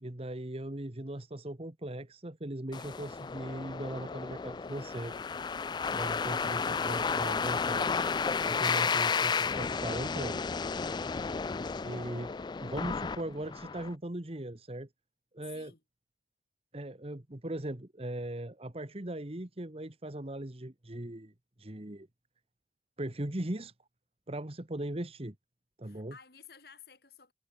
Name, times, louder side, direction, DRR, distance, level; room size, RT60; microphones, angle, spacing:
voice 1, 0.0-5.2 5.9-7.9 8.4-10.4 11.8-14.9 15.3-15.7 16.7-21.3 21.6-22.1 23.0-23.7 24.3-25.3 25.8-26.2, right 1 dB, 35° right, 1.4 m, -39 dB
sound 1, 2.7-13.9, left 5 dB, 25° left, 0.3 m, -32 dB
voice 2, 11.4-11.9 15.4-15.8 25.8-27.3, left 7 dB, 60° left, 5.5 m, -54 dB
head